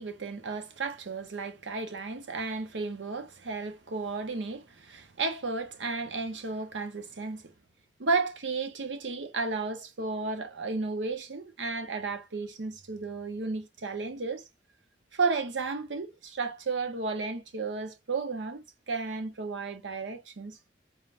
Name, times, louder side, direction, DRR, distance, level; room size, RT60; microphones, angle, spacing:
voice 1, 0.0-7.5 8.0-14.5 15.1-20.6, right 4 dB, 85° right, 0.8 m, -33 dB
4.0 x 2.4 x 3.2 m
head